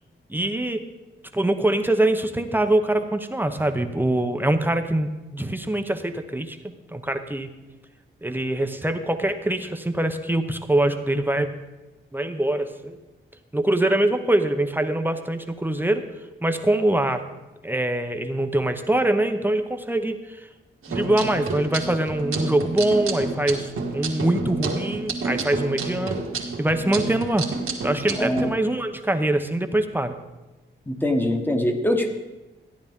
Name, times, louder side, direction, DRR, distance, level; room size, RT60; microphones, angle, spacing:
voice 1, 0.3-0.9 1.3-7.5 8.2-11.6 12.1-13.0 13.5-16.1 16.4-17.2 17.6-20.5 20.9-26.2 26.6-27.5 27.8-30.1, right 1 dB, 10° right, 7 dB, 0.8 m, -23 dB
sound 1, 20.8-28.4, right 3 dB, 85° right, 1.7 m, -30 dB
voice 2, 28.2-28.5 30.9-32.1, left 1 dB, 10° left, 4 dB, 1.3 m, -23 dB
14.5 x 10.5 x 3.6 m, 1.1 s
wide cardioid pair, 105°, 21 cm